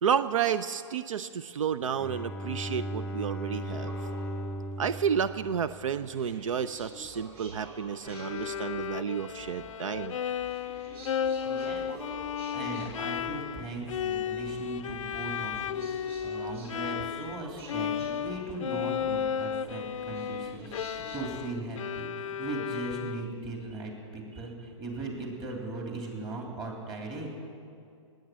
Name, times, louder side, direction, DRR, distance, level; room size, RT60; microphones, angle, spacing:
voice 1, 0.0-3.9 4.8-10.1, right 7 dB, 90° right, 13 dB, 0.5 m, -31 dB
Bowed string instrument, 1.8-6.4, equal, 5° left, 0.4 m, -37 dB
sound 1, 3.6-21.3, right 2 dB, 50° right, 3.8 m, -49 dB
Bowed string instrument 2, 8.1-17.4 17.7-23.5, left 8 dB, 90° left, 0.5 m, -34 dB
voice 2, 11.4-11.9 12.5-27.3, right 2 dB, 30° right, 0 dB, 3.2 m, -38 dB
19.5 x 9.2 x 7.5 m, 2.5 s
hypercardioid pair, 145°, 16 cm